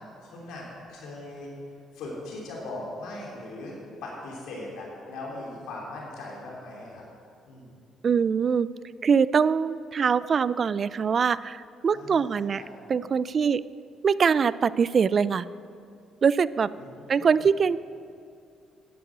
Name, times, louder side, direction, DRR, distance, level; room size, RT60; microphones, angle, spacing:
voice 1, 0.2-1.5 1.9-3.7 4.0-7.0 7.5-7.7 11.8-12.7 16.7-17.3, left 2 dB, 85° left, -3 dB, 3.0 m, -39 dB
voice 2, 8.0-8.7 9.0-12.6 12.9-13.6 14.0-15.5 16.2-16.7 17.1-17.8, right 6 dB, 45° right, 18 dB, 0.3 m, -23 dB
10.5 x 7.9 x 7.5 m, 2.4 s
cardioid pair, 85°, 0 cm